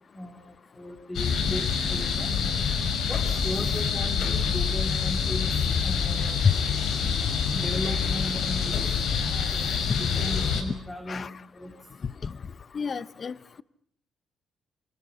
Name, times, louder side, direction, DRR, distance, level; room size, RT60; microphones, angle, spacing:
voice 1, 0.1-2.3 3.0-5.5 5.8-6.5 7.5-8.8 9.1-11.8, left 1 dB, 10° left, 5 dB, 4.5 m, -37 dB
sound 1, 1.1-10.6, left 6 dB, 75° left, 5.5 m, -26 dB
voice 2, 12.7-13.6, left 6 dB, 40° left, 18 dB, 1.0 m, -27 dB
28.0 x 27.5 x 5.6 m, 0.67 s
cardioid pair, 90°, 0 cm